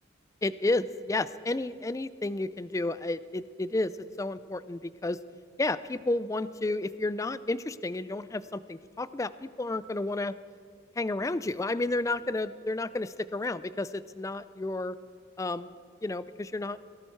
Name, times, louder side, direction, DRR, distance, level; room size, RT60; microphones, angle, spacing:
voice 1, 0.4-5.2 5.6-10.3 11.0-15.0 15.4-15.7 16.0-16.8, left 2 dB, 15° left, 16 dB, 0.3 m, -31 dB
18.5 x 16.5 x 4.6 m, 2.2 s
head